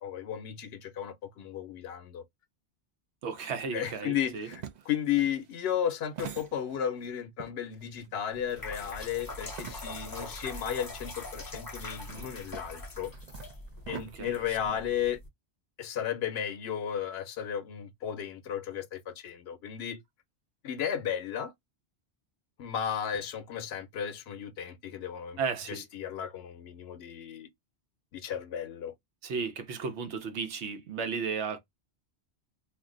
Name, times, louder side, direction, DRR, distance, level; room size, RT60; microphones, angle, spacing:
voice 1, 0.0-2.2 3.7-13.1 13.9-15.2 15.8-20.0 20.6-21.5 22.6-25.4 25.7-27.5 28.1-28.9, left 9 dB, 70° left, 0.8 m, -34 dB
voice 2, 3.2-4.5 13.9-14.8 25.4-25.9 29.2-31.6, right 5 dB, 85° right, 1.0 m, -35 dB
sound 1, 4.2-7.1 7.4-10.2 10.6-10.7 11.5-15.2, right 9 dB, 55° right, 0.5 m, -46 dB
sound 2, 8.3-15.3, left 2 dB, 25° left, 0.6 m, -43 dB
2.5 x 2.2 x 3.6 m
omnidirectional pair, 1.1 m